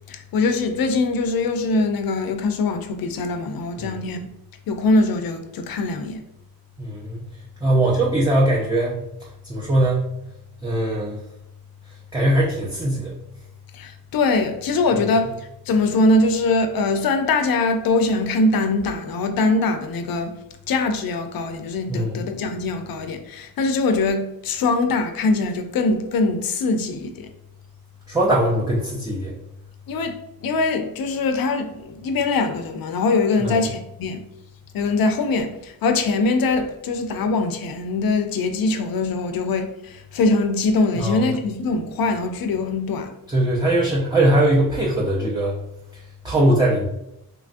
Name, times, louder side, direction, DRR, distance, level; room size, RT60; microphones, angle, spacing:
voice 1, 0.1-4.3 4.7-6.2 13.7-15.3 15.7-20.3 20.7-27.3 29.9-30.2 30.4-34.2 34.7-43.1, left 3 dB, 65° left, 6 dB, 0.5 m, -22 dB
voice 2, 6.8-7.3 7.6-9.0 9.5-10.1 10.6-11.2 12.1-13.1 21.9-22.2 28.1-29.3 33.4-33.6 41.0-41.3 43.3-45.6 46.2-46.9, right 1 dB, 10° right, -5 dB, 0.4 m, -20 dB
3.0 x 2.3 x 2.5 m, 0.82 s
cardioid pair, 90°, 37 cm